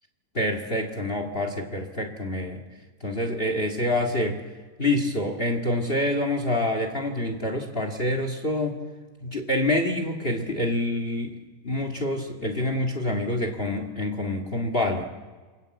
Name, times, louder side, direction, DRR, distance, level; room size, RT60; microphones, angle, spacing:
voice 1, 0.3-2.6 3.0-4.4 4.8-8.8 9.2-11.3 11.6-15.0, left 1 dB, 25° left, 5 dB, 1.2 m, -26 dB
28.0 x 22.0 x 7.9 m, 1.4 s
omnidirectional pair, 4.1 m